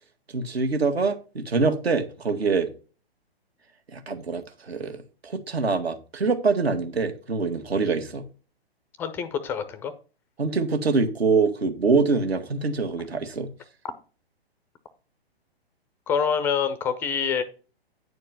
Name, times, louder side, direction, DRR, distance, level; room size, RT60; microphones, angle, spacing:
voice 1, 0.3-2.7 3.9-8.2 10.4-13.5, right 4 dB, 75° right, 1.7 m, -24 dB
voice 2, 9.0-9.9 16.1-17.4, left 7 dB, 5° left, 0.4 m, -26 dB
9.4 x 4.5 x 5.7 m
figure-of-eight pair, 125°, 31 cm